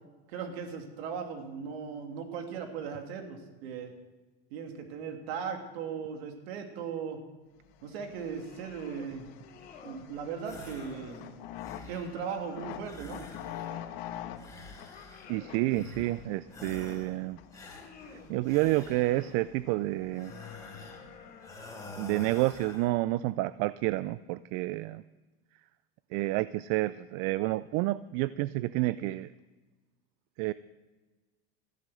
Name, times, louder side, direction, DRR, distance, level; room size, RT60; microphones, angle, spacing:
voice 1, 0.3-3.9 4.5-7.2 7.8-9.3 9.8-11.2 11.9-13.2, right 6 dB, 80° right, 5 dB, 2.4 m, -38 dB
sound 1, 7.7-21.6, left 10 dB, 70° left, 1.4 m, -47 dB
sound 2, 8.2-9.1 9.4-10.1 10.5-11.3 11.8-13.8 14.3-15.7 16.3-17.2 17.6-18.3 18.8-19.4 19.9-22.1, left 5 dB, 30° left, 2.8 m, -52 dB
sound 3, 10.4-11.0 11.4-12.2 12.8-13.9 14.4-15.4 15.7-16.2 16.5-17.2 17.5-19.4 20.1-21.1 21.4-22.9, left 2 dB, 10° left, 3.2 m, -47 dB
voice 2, 15.3-17.4 18.1-20.3 21.9-25.0 26.1-29.3 30.4-30.5, right 18 dB, 60° right, 17 dB, 0.5 m, -29 dB
14.5 x 9.0 x 7.7 m, 1.2 s
supercardioid pair, 115°, 31 cm